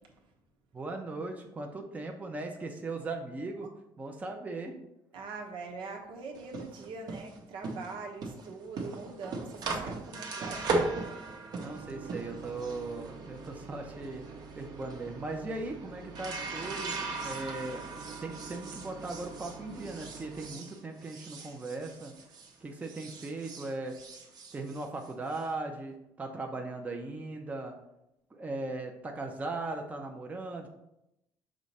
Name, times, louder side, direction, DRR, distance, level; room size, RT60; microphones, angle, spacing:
voice 1, 0.7-3.7 4.0-4.7 11.6-14.3 14.5-16.9 17.2-22.1 22.6-24.0 24.5-27.8 28.3-30.7, right 2 dB, 15° right, 2 dB, 0.7 m, -38 dB
voice 2, 5.1-10.7, right 4 dB, 75° right, 2 dB, 1.2 m, -43 dB
sound 1, 6.3-22.5 22.8-25.4, right 3 dB, 50° right, 1.1 m, -38 dB
6.2 x 3.1 x 5.4 m, 0.85 s
cardioid pair, 135°, 9 cm